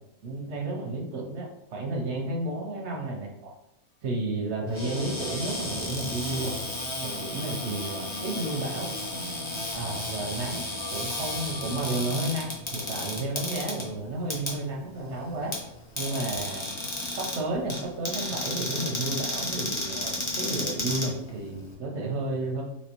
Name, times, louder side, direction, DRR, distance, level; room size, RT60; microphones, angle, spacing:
voice 1, 0.2-3.5 4.0-6.5 7.0-8.9 9.7-15.5 16.0-16.7 17.2-22.6, right 2 dB, 60° right, 0 dB, 0.7 m, -32 dB
sound 1, 4.7-5.7 6.0-6.1 6.3-12.3, left 7 dB, 85° left, 1.2 m, -51 dB
Cupboard open or close, 4.7-21.7, left 1 dB, 45° left, 0.4 m, -33 dB
3.1 x 2.9 x 2.8 m, 0.82 s
omnidirectional pair, 1.6 m